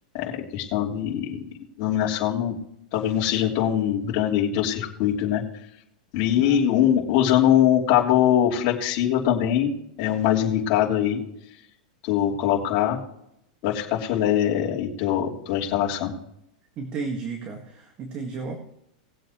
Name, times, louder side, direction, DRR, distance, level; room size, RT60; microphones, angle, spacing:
voice 1, 0.1-1.4 1.8-2.5 2.9-5.4 6.1-9.7 10.0-11.2 12.0-13.0 13.6-16.1, left 10 dB, 40° left, -3 dB, 3.1 m, -22 dB
voice 2, 16.8-18.6, right 4 dB, 30° right, 3 dB, 1.7 m, -33 dB
20.0 x 7.8 x 3.1 m, 0.79 s
supercardioid pair, 160°, 4 cm